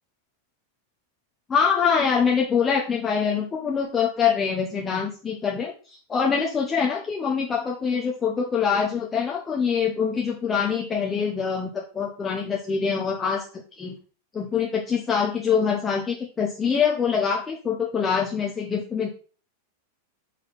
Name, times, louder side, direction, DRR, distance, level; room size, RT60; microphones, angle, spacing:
voice 1, 1.5-5.7 6.1-13.4 13.8-14.0 14.3-19.1, left 6 dB, 20° left, -1 dB, 1.1 m, -24 dB
6.3 x 4.6 x 4.2 m, 0.38 s
figure-of-eight pair, 90°, 0 cm